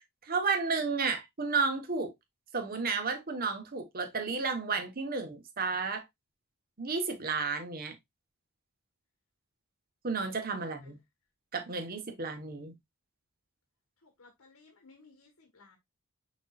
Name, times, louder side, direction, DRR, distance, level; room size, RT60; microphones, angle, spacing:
voice 1, 0.2-2.1 2.5-6.0 6.8-7.9 10.0-11.0 11.5-12.7, right 4 dB, 45° right, 1.1 m, -32 dB
voice 2, 10.6-10.9 14.0-15.8, left 3 dB, 85° left, 1.3 m, -59 dB
5.2 x 4.1 x 2.3 m
head